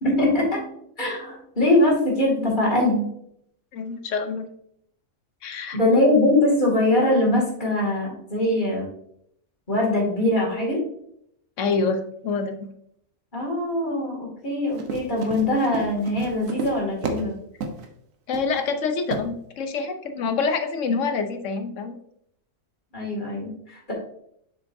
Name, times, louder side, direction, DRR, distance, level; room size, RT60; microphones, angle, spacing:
voice 1, 0.0-3.0 5.7-8.8 9.7-10.8 13.3-17.3 22.9-23.9, left 1 dB, 35° left, -3 dB, 2.5 m, -22 dB
voice 2, 3.7-4.5 5.4-5.8 11.6-12.7 18.3-22.0, left 4 dB, 65° left, 7 dB, 1.1 m, -26 dB
Run, 14.7-17.3 17.6-17.9 18.3-18.6 19.1-19.3, right 3 dB, 70° right, 1.3 m, -31 dB
7.3 x 6.2 x 2.7 m, 0.71 s
omnidirectional pair, 1.4 m